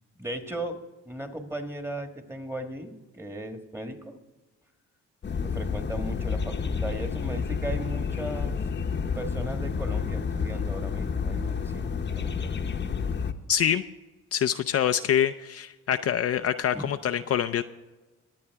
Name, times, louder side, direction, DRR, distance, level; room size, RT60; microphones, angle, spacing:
voice 1, 0.2-0.8 1.0-4.1 5.4-8.6 9.1-12.6 16.7-16.9, right 1 dB, 10° right, 6 dB, 1.5 m, -37 dB
sound 1, 5.2-13.3, left 6 dB, 35° left, 0.9 m, -30 dB
voice 2, 13.5-13.8 14.3-17.6, left 9 dB, 55° left, 9 dB, 0.5 m, -25 dB
21.5 x 8.6 x 3.5 m, 1.2 s
cardioid pair, 90°, 30 cm